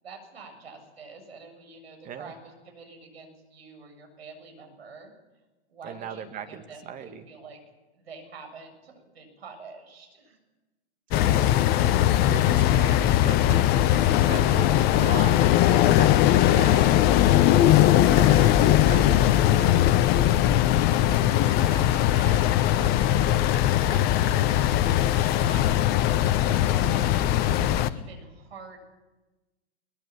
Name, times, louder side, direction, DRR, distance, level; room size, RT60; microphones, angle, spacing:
voice 1, 0.0-5.1 5.7-7.6 7.9-10.4 16.3-16.5 21.1-22.6 23.5-27.2 27.9-28.8, right 4 dB, 70° right, 4 dB, 7.1 m, -46 dB
voice 2, 5.8-7.3 11.1-17.1 17.5-17.8 18.1-19.9, right 8 dB, 25° right, 6 dB, 2.0 m, -39 dB
sound 1, 11.1-27.9, left 12 dB, 30° left, 0.9 m, -20 dB
22.0 x 20.0 x 7.3 m, 1.2 s
figure-of-eight pair, 110°, 33 cm